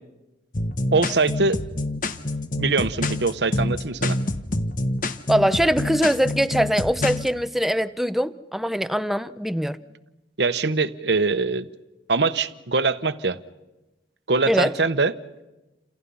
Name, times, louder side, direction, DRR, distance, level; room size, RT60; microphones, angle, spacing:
sound 1, 0.5-7.3, left 2 dB, 50° left, 1.4 m, -26 dB
voice 1, 0.9-1.6 2.6-4.2 10.4-11.6 12.1-13.4 14.3-15.1, right 3 dB, 75° right, 12 dB, 1.1 m, -22 dB
voice 2, 5.3-9.8 14.5-14.7, equal, ahead, 12 dB, 0.8 m, -22 dB
30.0 x 27.0 x 5.6 m, 1.0 s
head